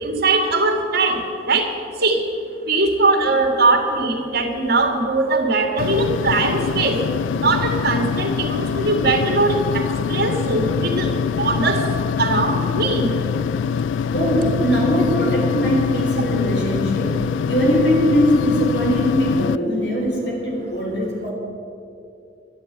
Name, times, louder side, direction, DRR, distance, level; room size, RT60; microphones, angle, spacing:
voice 1, 0.0-1.2 1.5-1.7 2.0-2.2 2.7-7.0 7.4-11.1 11.4-11.8 12.2-13.1, right 3 dB, 60° right, 3 dB, 2.2 m, -20 dB
sound 1, 5.8-19.6, left 6 dB, 90° left, 0.3 m, -24 dB
voice 2, 14.1-17.2 17.5-21.3, equal, 65° left, -1 dB, 4.2 m, -20 dB
11.5 x 11.0 x 9.3 m, 2.7 s
head